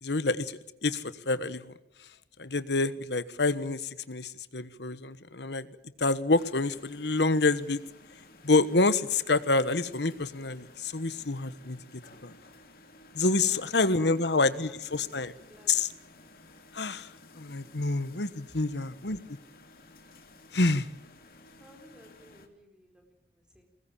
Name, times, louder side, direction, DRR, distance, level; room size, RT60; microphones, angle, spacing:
voice 1, 0.0-1.7 2.4-7.8 8.4-11.8 12.2-12.3 13.1-15.3 15.7-15.9 16.7-19.2 20.5-20.9, left 3 dB, 80° left, 14 dB, 1.3 m, -27 dB
sound 1, 6.4-22.5, left 2 dB, 55° left, 2.5 m, -55 dB
voice 2, 13.4-14.2 14.5-16.1 21.6-23.6, left 1 dB, 5° right, 3 dB, 4.4 m, -57 dB
22.5 x 19.5 x 7.4 m, 0.84 s
head